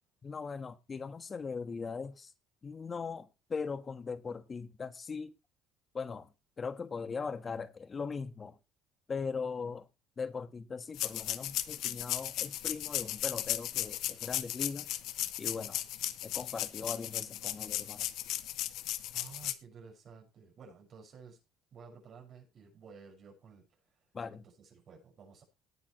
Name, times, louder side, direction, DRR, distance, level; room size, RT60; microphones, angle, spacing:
voice 1, 0.2-2.3 2.6-5.3 5.9-6.3 6.6-8.6 9.1-9.9 10.2-14.9 15.4-15.8 16.2-18.1 24.1-24.5, left 5 dB, 30° left, 1.4 m, -39 dB
sound 1, 10.9-19.5, left 14 dB, 70° left, 0.9 m, -36 dB
voice 2, 19.1-21.4 21.7-23.6 24.3-25.4, right 5 dB, 50° right, 6.1 m, -53 dB
18.5 x 8.5 x 3.2 m
cardioid pair, 105°, 0 cm